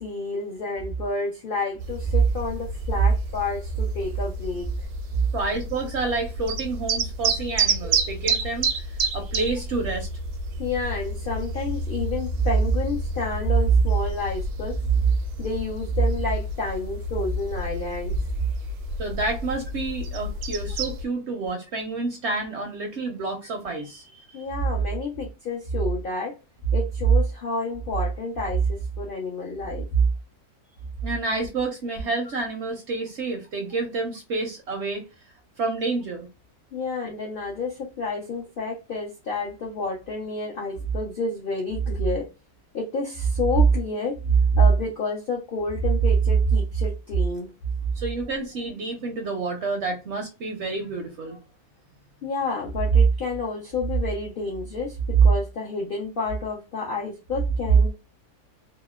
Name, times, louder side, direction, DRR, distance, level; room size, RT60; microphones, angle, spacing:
voice 1, 0.0-4.9 10.6-14.8 15.4-18.1 24.3-26.4 26.7-29.9 36.7-42.3 42.7-47.5 52.2-57.9, right 3 dB, 70° left, 0.5 m, -25 dB
sound 1, 1.8-21.1, right 2 dB, 85° right, 1.1 m, -30 dB
voice 2, 5.3-10.1 19.0-24.5 31.0-35.1 35.6-36.3 48.0-51.4, right 3 dB, 65° right, 0.7 m, -29 dB
2.8 x 2.0 x 2.2 m
omnidirectional pair, 1.6 m